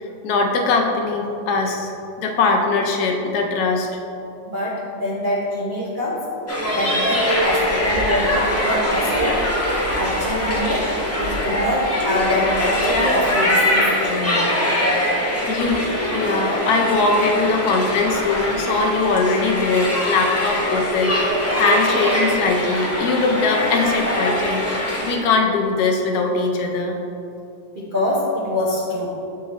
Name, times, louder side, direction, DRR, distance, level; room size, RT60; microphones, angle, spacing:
voice 1, 0.2-1.9 2.2-3.9 15.5-15.8 16.1-27.0, left 3 dB, 65° left, 2 dB, 1.1 m, -21 dB
voice 2, 4.4-6.3 6.7-9.4 9.9-14.6 27.7-29.2, left 1 dB, 50° right, -7 dB, 0.5 m, -25 dB
sound 1, 6.5-25.1, left 1 dB, 25° left, 0.3 m, -22 dB
7.7 x 3.7 x 4.0 m, 2.7 s
omnidirectional pair, 2.1 m